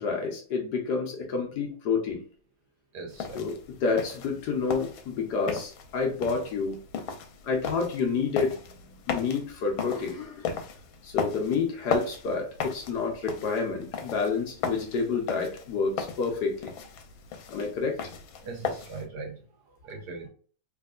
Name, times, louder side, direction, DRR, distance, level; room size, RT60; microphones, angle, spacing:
voice 1, 0.0-2.2 3.3-6.8 7.4-8.6 8.8-10.5 11.0-16.7 17.5-18.0, left 5 dB, 65° left, 1.2 m, -29 dB
voice 2, 2.9-3.4 7.1-7.2 18.4-19.4 19.8-20.3, right 3 dB, 65° right, 1.2 m, -39 dB
sound 1, 3.1-19.0, left 6 dB, 90° left, 1.5 m, -37 dB
3.5 x 3.3 x 2.3 m
omnidirectional pair, 2.2 m